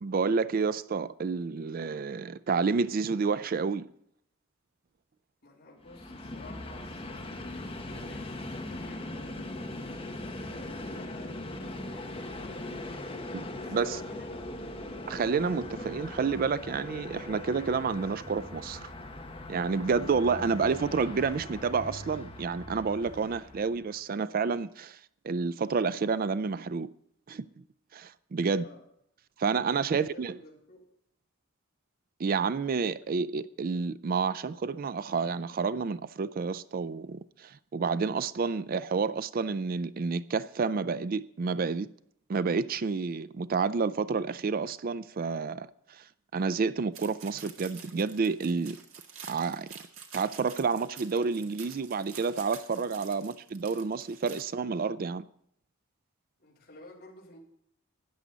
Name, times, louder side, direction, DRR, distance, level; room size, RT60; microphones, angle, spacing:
voice 1, 0.0-3.9 13.3-13.4 13.7-14.0 15.1-18.9 19.5-25.0 25.2-26.9 27.3-27.5 27.9-28.6 29.4-30.4 32.2-41.9 42.3-46.0 46.3-48.8 49.3-49.7 50.1-55.3, right 5 dB, 45° right, 0.4 m, -29 dB
voice 2, 5.4-9.9 10.5-12.9 13.5-14.4 28.5-28.9 29.9-30.8 53.1-53.4 56.4-57.4, left 2 dB, 45° left, 3.7 m, -52 dB
Train, 5.8-23.9, left 1 dB, 25° left, 1.4 m, -40 dB
sound 1, 46.9-54.4, right 7 dB, 70° right, 1.9 m, -48 dB
13.5 x 9.6 x 3.9 m
head